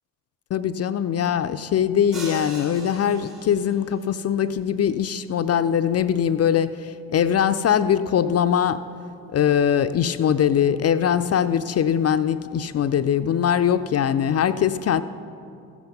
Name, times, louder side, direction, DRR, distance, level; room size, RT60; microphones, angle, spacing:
voice 1, 0.5-8.8 9.3-15.0, left 9 dB, 35° left, 12 dB, 0.4 m, -22 dB
sound 1, 2.1-3.9, right 1 dB, 90° right, 2.9 m, -39 dB
15.0 x 8.0 x 5.8 m, 2.7 s
hypercardioid pair, 50°, 44 cm